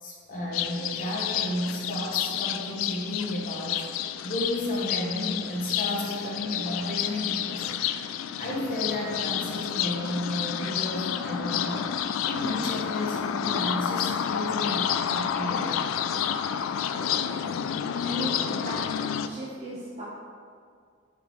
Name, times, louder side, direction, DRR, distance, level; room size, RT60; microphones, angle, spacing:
voice 1, 0.0-7.8 8.4-11.9 12.2-15.7, left 1 dB, 45° left, -3 dB, 1.1 m, -32 dB
sound 1, 0.5-19.3, left 9 dB, 70° left, 0.3 m, -30 dB
voice 2, 16.9-17.4 18.0-18.8 19.2-20.0, right 1 dB, 35° right, -9 dB, 1.1 m, -37 dB
6.9 x 5.8 x 3.1 m, 2.1 s
head